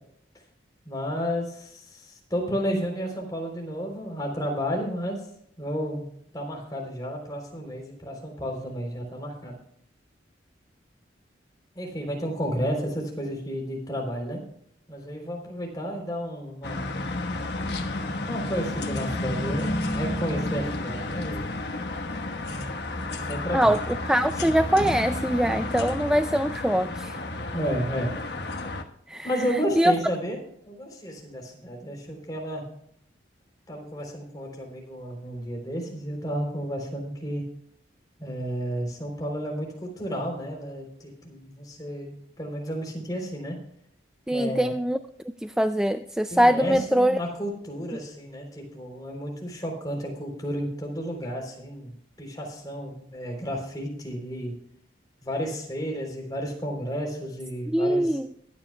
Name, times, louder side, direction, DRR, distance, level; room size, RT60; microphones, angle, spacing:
voice 1, 0.9-5.2 5.6-6.0 6.3-9.6 11.8-14.4 14.9-16.8 18.3-21.5 23.3-23.7 27.5-28.1 29.2-30.4 30.7-32.7 33.7-37.4 38.2-43.6 44.3-44.7 46.3-54.5 55.2-58.1, equal, 20° left, 0 dB, 3.6 m, -32 dB
sound 1, 16.6-28.8, left 2 dB, 60° left, 1.3 m, -31 dB
voice 2, 23.5-27.2 29.1-29.9 44.3-45.0 45.4-47.2 57.7-58.3, equal, 5° right, 9 dB, 0.3 m, -23 dB
22.5 x 9.5 x 2.3 m, 0.69 s
head